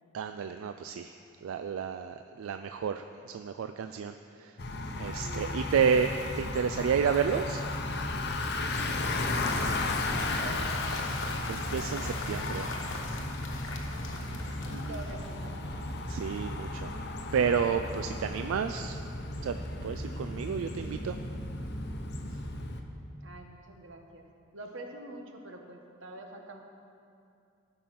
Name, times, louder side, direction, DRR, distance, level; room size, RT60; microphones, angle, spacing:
voice 1, 0.1-4.6 4.9-7.7 11.5-12.7 16.1-16.9 17.3-19.0 19.4-19.6 19.8-21.2, right 6 dB, 90° right, 8 dB, 0.3 m, -31 dB
Bicycle, 4.6-22.8, left 2 dB, 55° left, 0.8 m, -34 dB
voice 2, 5.2-5.6 10.2-10.7 14.6-15.9 23.2-24.3 24.5-26.6, right 2 dB, 70° right, 3 dB, 1.1 m, -45 dB
Cheering / Applause / Crowd, 8.4-15.5, left 3 dB, 75° left, 1.1 m, -41 dB
13.0 x 5.6 x 5.8 m, 2.5 s
head